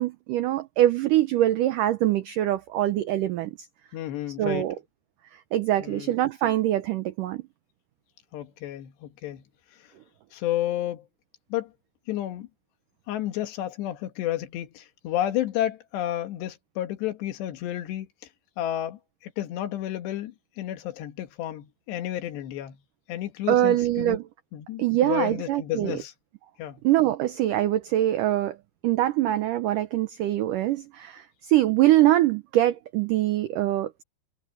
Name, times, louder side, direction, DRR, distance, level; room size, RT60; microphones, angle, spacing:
voice 1, 0.0-3.5 4.4-4.7 5.5-7.4 23.5-24.2 24.8-26.0 26.8-28.6 28.8-34.0, right 14 dB, 90° right, 1.8 m, -23 dB
voice 2, 3.9-4.7 5.8-6.2 8.3-9.4 9.7-9.9 10.3-11.1 11.5-11.7 12.1-12.5 13.1-18.1 18.6-22.8 23.1-24.2 24.5-26.1 26.6-26.8, left 13 dB, 85° left, 3.7 m, -31 dB
omnidirectional pair, 4.8 m